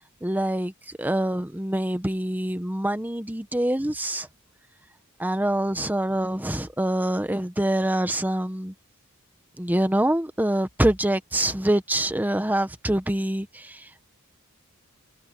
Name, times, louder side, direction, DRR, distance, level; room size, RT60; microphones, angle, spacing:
voice 1, 0.2-4.3 5.2-8.7 9.6-14.0, right 1 dB, 10° right, 1.0 m, -25 dB
head